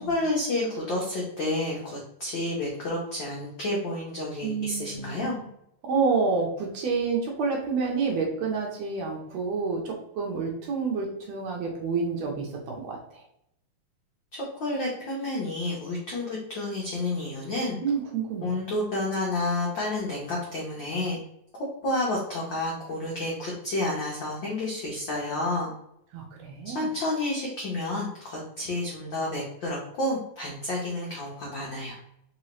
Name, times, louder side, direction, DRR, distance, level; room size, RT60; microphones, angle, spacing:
voice 1, 0.0-5.4 14.3-17.8 18.4-21.2 21.8-25.7 26.6-32.0, left 2 dB, 80° left, -4 dB, 1.0 m, -30 dB
voice 2, 4.4-5.4 5.8-13.2 17.8-18.5 26.1-26.9, right 4 dB, 75° right, 0 dB, 1.7 m, -29 dB
4.7 x 2.9 x 3.0 m, 0.76 s
omnidirectional pair, 3.4 m